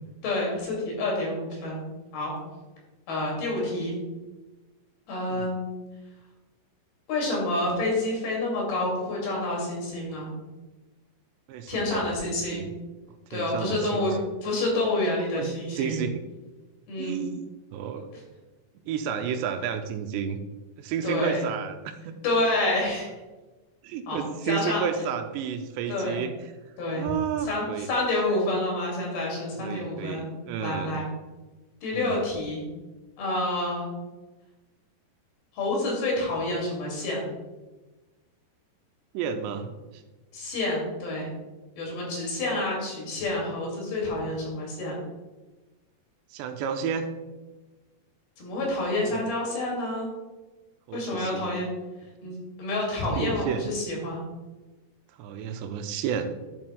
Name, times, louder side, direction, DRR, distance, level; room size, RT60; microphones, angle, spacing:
voice 1, 0.2-1.8 2.1-2.3 3.1-4.0 5.1-5.7 7.1-10.3 11.7-12.7 13.3-16.0 16.9-17.2 21.0-21.4 22.2-23.1 24.1-24.2 24.5-24.8 25.9-26.2 26.8-27.1 27.4-30.3 30.6-31.1 31.8-32.6 33.2-33.9 35.6-37.2 40.3-41.3 41.8-45.0 48.4-50.1 50.9-51.7 52.2-54.3, left 2 dB, 65° left, -2 dB, 4.1 m, -28 dB
voice 2, 11.5-12.7 13.3-14.2 15.3-16.2 17.0-17.4 17.7-18.1 18.9-20.4 20.8-22.2 23.8-26.3 27.0-27.9 29.6-31.0 31.9-32.2 39.1-40.0 46.3-47.1 49.1-49.2 50.9-51.6 52.2-52.4 53.2-53.7 55.2-56.3, right 7 dB, 85° right, 7 dB, 2.7 m, -32 dB
12.0 x 7.2 x 2.3 m, 1.2 s
omnidirectional pair, 5.0 m